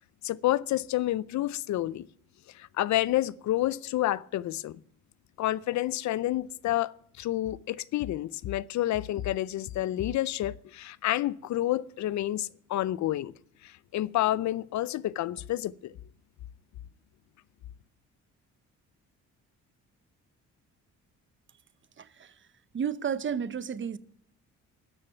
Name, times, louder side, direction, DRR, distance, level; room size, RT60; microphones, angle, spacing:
voice 1, 0.2-2.1 2.5-4.8 5.4-13.3 13.6-15.9, left 14 dB, 70° left, 0.5 m, -29 dB
voice 2, 22.0-22.3 22.7-24.0, right 7 dB, 40° right, 0.8 m, -32 dB
13.0 x 6.6 x 9.2 m
cardioid pair, 90°, 30 cm